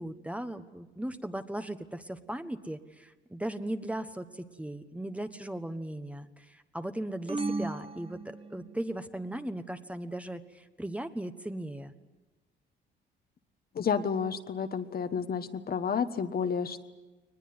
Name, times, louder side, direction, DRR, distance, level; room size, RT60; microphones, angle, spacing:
voice 1, 0.0-11.9, right 1 dB, 5° right, 9 dB, 1.3 m, -37 dB
sound 1, 7.3-9.0, right 3 dB, 30° right, 1.1 m, -35 dB
voice 2, 13.7-16.9, left 6 dB, 50° left, 9 dB, 1.4 m, -31 dB
22.0 x 20.0 x 9.7 m, 1.2 s
cardioid pair, 90°, 20 cm